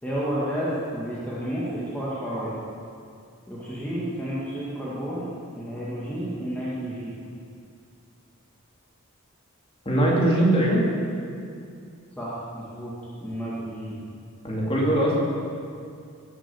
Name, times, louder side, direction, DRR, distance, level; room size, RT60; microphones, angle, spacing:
voice 1, 0.0-2.5 3.5-5.3 5.6-7.1 12.2-12.9 13.2-14.0, equal, 5° left, -9 dB, 2.0 m, -31 dB
voice 2, 9.8-10.9 14.4-15.2, right 1 dB, 25° left, -4 dB, 2.7 m, -21 dB
18.5 x 7.6 x 7.1 m, 2.4 s
head